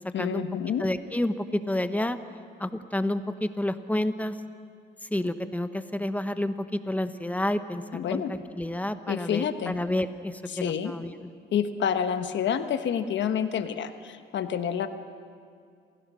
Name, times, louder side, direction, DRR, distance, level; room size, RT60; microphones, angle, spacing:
voice 1, 0.1-0.8 7.9-8.3 9.1-9.8 10.5-10.9 11.5-14.9, left 8 dB, 65° left, 9 dB, 1.2 m, -28 dB
voice 2, 0.8-2.2 2.6-4.4 5.0-11.1, left 1 dB, 5° left, 10 dB, 1.0 m, -29 dB
27.5 x 15.5 x 6.3 m, 2.3 s
cardioid pair, 90°, 20 cm